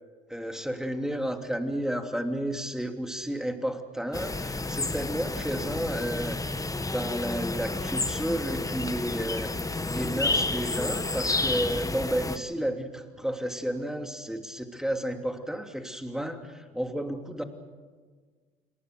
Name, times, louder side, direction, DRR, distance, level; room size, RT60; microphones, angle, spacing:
voice 1, 0.3-6.4 6.8-9.5 9.9-17.4, equal, 5° right, 5 dB, 3.0 m, -32 dB
sound 1, 4.1-12.4, left 2 dB, 20° left, 1.6 m, -30 dB
28.0 x 19.0 x 6.9 m, 1.5 s
supercardioid pair, 65°, 19 cm